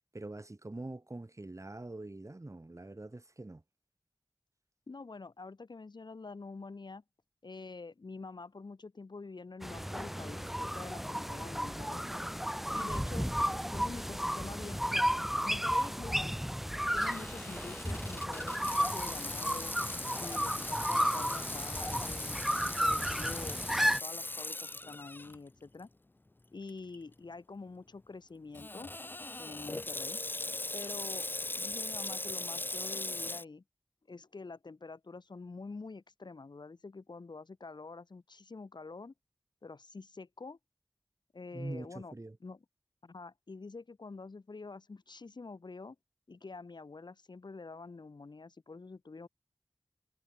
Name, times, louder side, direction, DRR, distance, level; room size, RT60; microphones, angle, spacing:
voice 1, 0.0-3.6 41.5-42.4, right 2 dB, 45° right, 5.2 m, -44 dB
voice 2, 4.9-7.0 7.4-12.1 12.7-13.3 13.7-15.1 15.4-16.5 16.8-19.8 20.2-22.4 22.7-25.9 26.5-28.9 29.4-30.2 30.7-33.6 34.1-39.1 39.6-40.6 41.3-42.1 42.4-42.7 43.0-46.0 46.3-49.3, left 3 dB, 80° left, 2.2 m, -47 dB
sound 1, 9.6-24.0, equal, 5° right, 1.2 m, -33 dB
Water tap faucet / Sink (filling or washing), 17.0-25.4 25.8-25.9 26.7-27.0 28.5-33.4, left 2 dB, 25° left, 0.5 m, -40 dB
wide cardioid pair, 40°, 7 cm